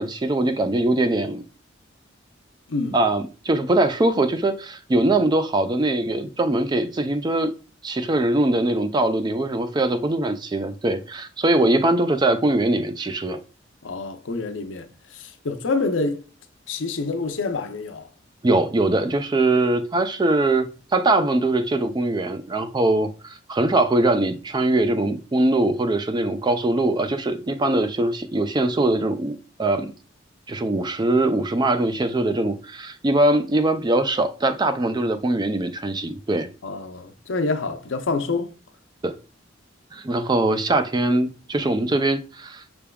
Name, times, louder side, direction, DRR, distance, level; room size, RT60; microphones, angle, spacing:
voice 1, 0.0-1.4 2.9-7.5 7.8-13.4 18.4-29.9 30.5-36.5 39.0-39.2 39.9-42.6, right 2 dB, 20° right, 0.4 m, -22 dB
voice 2, 13.8-16.2 16.7-18.1 36.6-38.5, left 3 dB, 75° left, 0.6 m, -27 dB
5.8 x 3.5 x 2.2 m
head